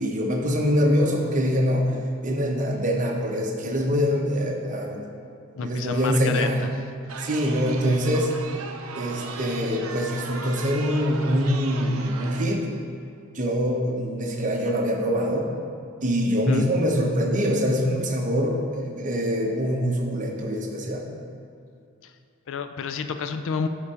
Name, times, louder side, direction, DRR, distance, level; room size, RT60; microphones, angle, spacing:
voice 1, 0.0-5.1 5.6-6.6 7.2-8.3 8.9-12.7 13.3-15.5 16.0-21.1, equal, 40° right, 1 dB, 0.9 m, -24 dB
voice 2, 5.6-6.5 7.1-7.2 16.5-16.7 22.0-22.1 22.5-23.7, left 5 dB, 65° left, 9 dB, 0.4 m, -29 dB
Chatter, 7.1-12.4, right 4 dB, 80° right, 0.6 m, -37 dB
7.1 x 5.4 x 4.9 m, 2.4 s
head